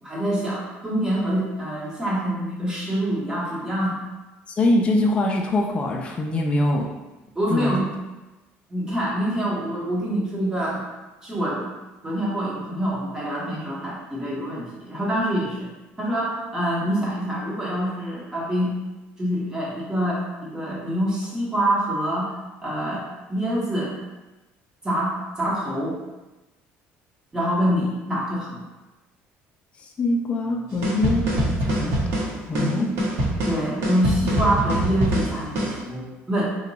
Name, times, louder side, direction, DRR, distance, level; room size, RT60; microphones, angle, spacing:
voice 1, 0.0-4.0 7.3-7.9 8.7-10.8 11.2-11.7 12.0-15.7 16.0-18.7 19.2-22.3 22.6-23.0 23.3-23.9 24.8-26.0 27.3-28.6 32.5-32.9 33.5-36.4, equal, 15° right, -5 dB, 1.0 m, -25 dB
voice 2, 4.6-6.9 7.5-7.7 29.8-32.0 32.5-32.9, left 2 dB, 25° left, 0 dB, 0.4 m, -23 dB
sound 1, 30.8-35.8, right 1 dB, 70° right, 0.9 m, -24 dB
2.9 x 2.2 x 3.9 m, 1.1 s
cardioid pair, 135°, 5 cm